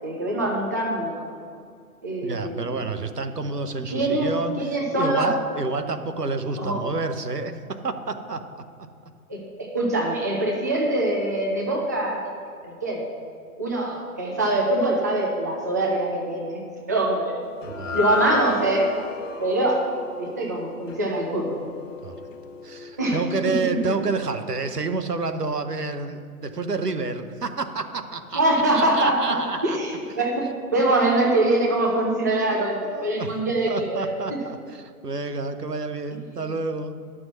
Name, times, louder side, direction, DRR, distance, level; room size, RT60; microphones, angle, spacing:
voice 1, 0.0-1.2 2.0-2.7 3.9-4.3 4.6-5.3 6.6-6.8 9.3-9.4 9.7-12.3 12.6-13.0 13.6-16.6 16.9-17.3 17.9-18.9 19.4-19.8 20.2-21.6 23.0-23.2 23.4-23.5 28.3-29.3 29.6-30.4 30.7-34.0, right 1 dB, 15° right, -2 dB, 0.4 m, -23 dB
voice 2, 2.2-7.6 7.8-8.6 17.5-18.0 22.0-22.2 22.6-28.4 28.7-29.8 30.7-30.8 32.5-33.3 33.7-36.9, right 3 dB, 85° right, 9 dB, 1.0 m, -29 dB
sound 1, 17.6-24.0, left 4 dB, 55° left, 0.9 m, -33 dB
11.0 x 6.2 x 6.1 m, 2.3 s
figure-of-eight pair, 125°, 46 cm